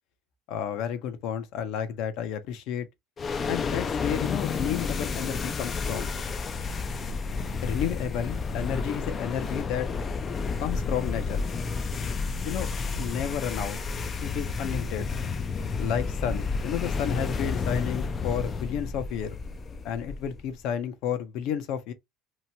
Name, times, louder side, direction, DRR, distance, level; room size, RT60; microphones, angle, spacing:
voice 1, 0.5-2.9 3.5-6.1 7.6-9.9 10.6-11.4 12.4-12.7 13.0-13.8 14.2-15.1 15.8-19.4 19.8-21.9, left 9 dB, 60° left, 0.6 m, -31 dB
sound 1, 3.2-20.5, left 4 dB, 25° left, 0.3 m, -31 dB
2.9 x 2.2 x 2.7 m
cardioid pair, 130°, 0 cm